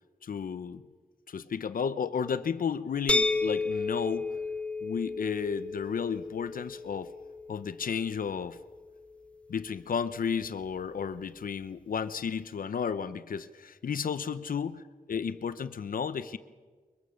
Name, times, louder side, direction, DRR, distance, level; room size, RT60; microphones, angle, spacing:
voice 1, 0.2-0.8 1.3-4.4 4.8-7.2 7.5-8.6 9.5-14.8 15.1-16.4, left 6 dB, 70° left, 13 dB, 0.9 m, -33 dB
sound 1, 3.1-8.9, left 3 dB, 10° left, 0.7 m, -33 dB
23.5 x 23.0 x 6.5 m, 1.5 s
wide cardioid pair, 145°, 15 cm